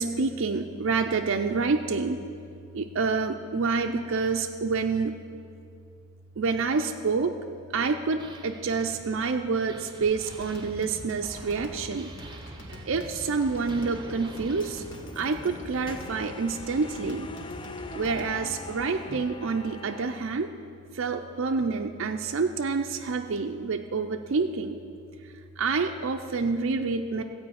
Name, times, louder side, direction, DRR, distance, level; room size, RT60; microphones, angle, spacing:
voice 1, 0.0-2.2 2.7-5.2 6.4-7.4 7.7-12.1 12.6-14.8 15.2-17.3 17.9-20.5 20.9-24.8 25.2-27.2, right 4 dB, 65° right, 5 dB, 0.5 m, -28 dB
sound 1, 7.9-15.6, right 2 dB, 20° right, 0.7 m, -49 dB
sound 2, 10.0-18.7, equal, 70° left, 1.7 m, -45 dB
sound 3, 13.4-20.2, left 2 dB, 20° left, 0.4 m, -43 dB
14.5 x 5.0 x 8.5 m, 2.5 s
head